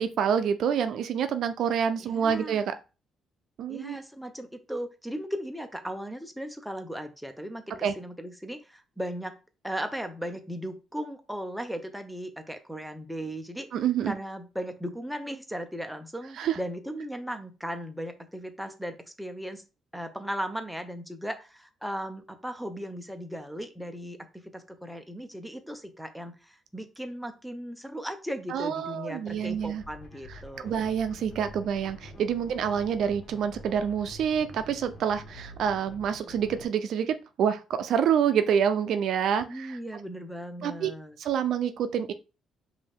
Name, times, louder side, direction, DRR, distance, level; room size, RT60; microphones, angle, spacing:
voice 1, 0.0-2.7 3.6-4.0 7.8-7.9 13.7-14.1 16.4-16.6 28.5-29.8 30.6-39.8 40.6-40.9 41.2-42.1, right 8 dB, 70° right, 10 dB, 0.4 m, -27 dB
voice 2, 2.0-2.6 3.7-9.4 9.6-13.7 14.0-19.6 19.9-30.9 39.5-41.2, equal, ahead, 6 dB, 0.7 m, -37 dB
sound 1, 29.3-36.7, left 1 dB, 45° left, 1.4 m, -47 dB
5.3 x 2.6 x 3.5 m, 0.31 s
cardioid pair, 105°, 0 cm